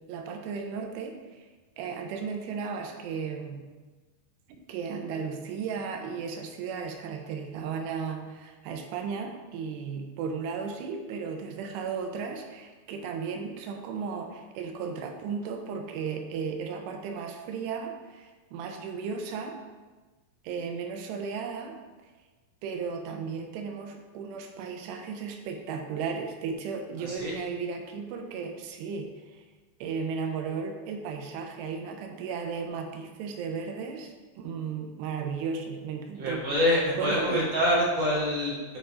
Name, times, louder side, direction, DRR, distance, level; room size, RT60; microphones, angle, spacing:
voice 1, 0.0-1.5 1.8-3.6 4.7-19.6 20.4-21.8 22.6-29.4 29.8-36.4 37.0-37.5, right 5 dB, 85° right, 4 dB, 2.8 m, -35 dB
voice 2, 36.2-38.8, left 1 dB, 45° right, -7 dB, 1.6 m, -26 dB
9.1 x 3.8 x 4.2 m, 1.3 s
omnidirectional pair, 4.8 m